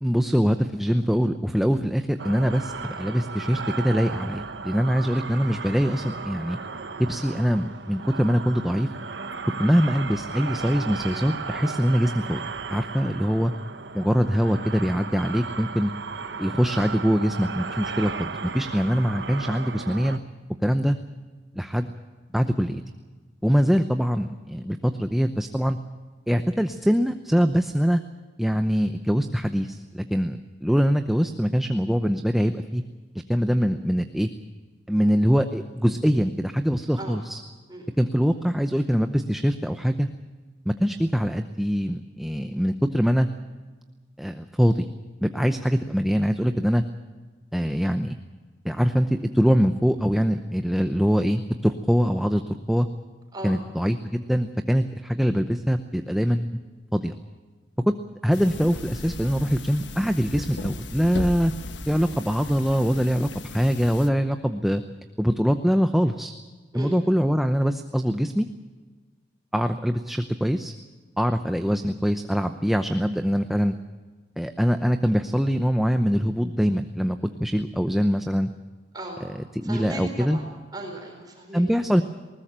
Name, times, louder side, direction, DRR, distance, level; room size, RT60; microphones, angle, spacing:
voice 1, 0.0-6.6 7.0-8.9 9.6-12.4 12.7-13.5 13.9-15.9 16.4-20.2 20.6-21.0 21.5-21.9 22.3-22.8 23.4-25.8 26.3-28.0 28.4-32.8 33.3-34.3 34.9-37.4 38.0-40.1 40.7-43.3 44.2-44.9 45.2-46.8 47.5-48.2 48.6-52.4 52.7-52.9 53.4-56.5 56.9-57.1 57.9-58.0 58.2-61.5 61.9-64.8 65.2-66.3 66.7-68.5 69.5-70.7 71.2-73.7 74.4-78.5 79.6-80.4 81.5-82.0, equal, ahead, 7 dB, 0.7 m, -23 dB
sound 1, 2.2-20.2, right 4 dB, 65° right, 1.2 m, -35 dB
sound 2, 58.3-64.1, left 2 dB, 75° left, 1.3 m, -36 dB
voice 2, 78.9-79.3 79.6-80.4 80.7-81.7, right 1 dB, 20° right, 2 dB, 4.0 m, -36 dB
20.5 x 19.5 x 7.4 m, 1.4 s
head